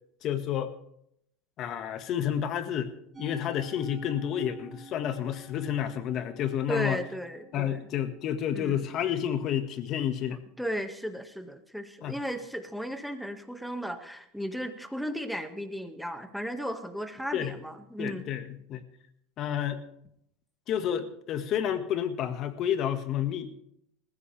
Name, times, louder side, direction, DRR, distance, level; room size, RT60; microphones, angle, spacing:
voice 1, 0.2-0.7 1.6-2.9 3.2-7.0 7.5-10.4 12.0-12.2 17.3-17.5 18.0-18.8 19.4-19.8 20.7-23.5, left 10 dB, 50° left, 9 dB, 1.8 m, -30 dB
Musical instrument, 3.1-9.5, right 3 dB, 25° right, 6.0 m, -50 dB
voice 2, 6.7-7.8 8.5-8.8 10.6-18.3, equal, ahead, 7 dB, 1.8 m, -35 dB
20.0 x 15.5 x 3.5 m, 0.74 s
hypercardioid pair, 95°, 0 cm